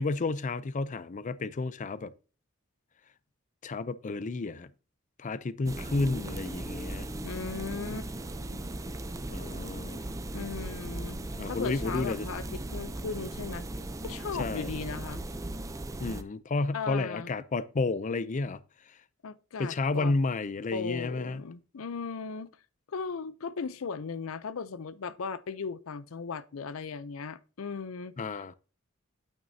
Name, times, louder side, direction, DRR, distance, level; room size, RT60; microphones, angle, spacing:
voice 1, 0.0-2.1 3.6-4.7 5.2-7.1 9.3-10.0 11.4-12.3 14.4-14.7 16.0-18.6 19.6-21.4 28.2-28.5, left 3 dB, 40° left, 0.5 m, -31 dB
sound 1, 5.7-16.2, right 1 dB, 15° right, 0.5 m, -37 dB
voice 2, 7.2-8.1 8.4-8.7 10.3-11.2 11.5-13.7 14.0-15.2 16.7-17.3 19.2-20.1 20.7-22.5 22.9-28.5, left 5 dB, 90° left, 0.5 m, -37 dB
9.0 x 8.9 x 2.7 m
head